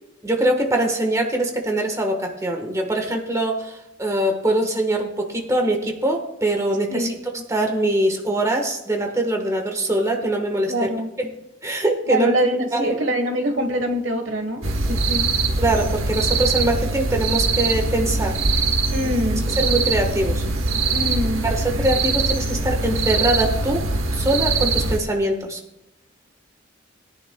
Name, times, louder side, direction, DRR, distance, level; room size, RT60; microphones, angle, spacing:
voice 1, 0.2-7.1 7.5-10.9 11.2-11.3 11.6-12.3 12.7-13.0 15.6-18.4 19.5-20.4 21.4-23.9 24.1-25.6, right 1 dB, 15° right, 2 dB, 1.3 m, -23 dB
voice 2, 10.7-11.1 12.1-15.3 18.9-19.5 20.9-21.4, equal, 65° right, 7 dB, 1.3 m, -24 dB
sound 1, 14.6-25.0, right 3 dB, 85° right, 1.2 m, -22 dB
20.5 x 10.5 x 2.3 m, 0.89 s
head